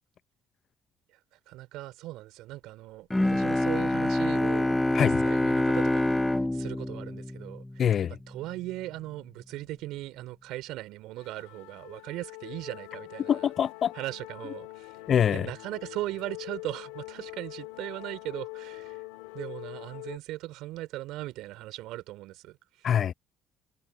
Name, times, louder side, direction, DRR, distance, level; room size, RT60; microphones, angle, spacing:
voice 1, 1.5-6.2 6.5-7.6 8.3-13.5 13.9-14.9 15.3-19.0 19.3-22.9, right 17 dB, 75° right, 3.7 m, -38 dB
Bowed string instrument, 3.1-8.2, left 1 dB, 10° left, 0.7 m, -26 dB
voice 2, 7.8-8.2 13.3-13.9 15.1-15.5 22.8-23.1, left 9 dB, 55° left, 0.6 m, -24 dB
sound 1, 11.2-20.2, left 26 dB, 85° left, 2.4 m, -43 dB
hypercardioid pair, 60°, 0 cm